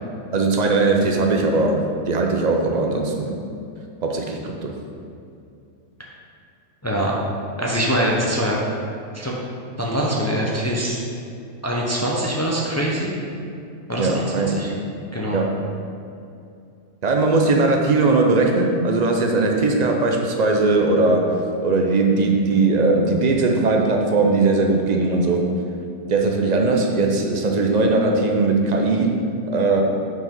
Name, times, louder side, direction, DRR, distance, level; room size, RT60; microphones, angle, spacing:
voice 1, 0.3-3.3 4.0-4.8 14.0-14.5 15.3-15.6 17.0-25.5 26.1-29.8, right 3 dB, 60° right, 2 dB, 0.4 m, -19 dB
voice 2, 6.8-7.2 7.6-8.6 9.1-9.3 9.8-11.0 11.6-13.1 13.9-14.7 15.1-15.4, equal, 20° left, -3 dB, 0.4 m, -23 dB
6.1 x 4.9 x 5.3 m, 2.5 s
omnidirectional pair, 1.6 m